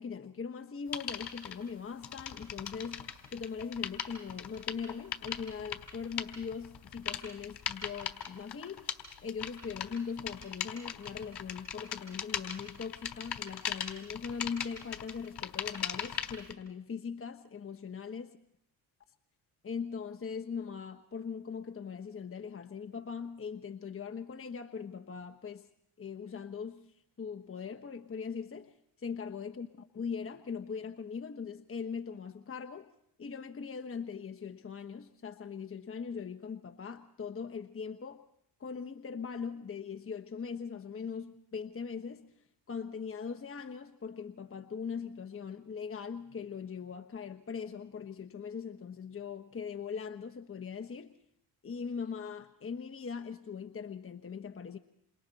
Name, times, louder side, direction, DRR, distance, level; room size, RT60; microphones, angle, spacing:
voice 1, 0.0-8.9 9.2-18.4 19.6-25.7 26.0-32.9 33.2-38.2 38.6-51.2 51.6-54.8, left 6 dB, 30° left, 8 dB, 1.1 m, -40 dB
sound 1, 0.9-1.5 2.0-16.5, left 9 dB, 55° left, 3.8 m, -39 dB
29.0 x 26.5 x 4.2 m, 0.74 s
supercardioid pair, 65°, 45 cm